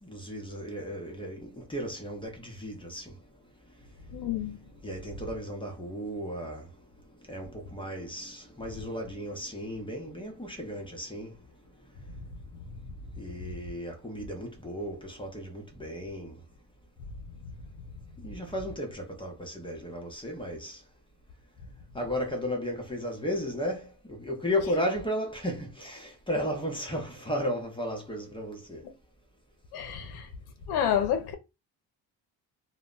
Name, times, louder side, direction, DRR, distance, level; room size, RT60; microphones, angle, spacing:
voice 1, 0.0-3.2 4.8-6.7 7.3-11.4 13.2-16.4 18.2-20.8 21.9-28.8, equal, 15° left, 0.7 m, -34 dB
voice 2, 4.1-4.6 28.8-28.9 29.7-30.3 30.7-31.3, left 9 dB, 85° left, 0.6 m, -29 dB
2.1 x 2.1 x 3.7 m
cardioid pair, 100°, 38 cm